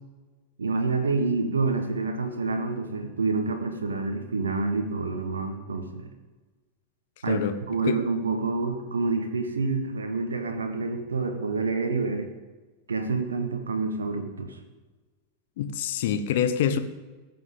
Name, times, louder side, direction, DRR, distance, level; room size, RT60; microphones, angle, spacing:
voice 1, 0.6-6.1 7.2-12.3 12.9-14.6, right 3 dB, 70° right, 5 dB, 1.4 m, -28 dB
voice 2, 15.6-16.8, left 9 dB, 55° left, 10 dB, 1.0 m, -26 dB
14.5 x 6.0 x 7.3 m, 1.2 s
figure-of-eight pair, 90°, 0 cm